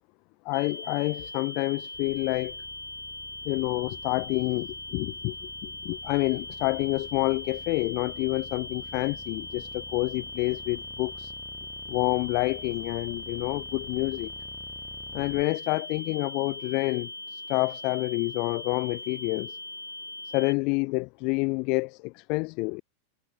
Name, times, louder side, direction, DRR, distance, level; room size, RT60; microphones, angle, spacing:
voice 1, 0.4-2.6 3.4-11.3 11.9-14.3 15.1-19.6 20.3-22.8, left 30 dB, 45° left, 0.3 m, -28 dB
sound 1, 0.5-20.5, left 2 dB, 85° left, 2.3 m, -40 dB
sound 2, 1.9-15.4, left 1 dB, 5° left, 1.9 m, -50 dB
figure-of-eight pair, 90°, 0 cm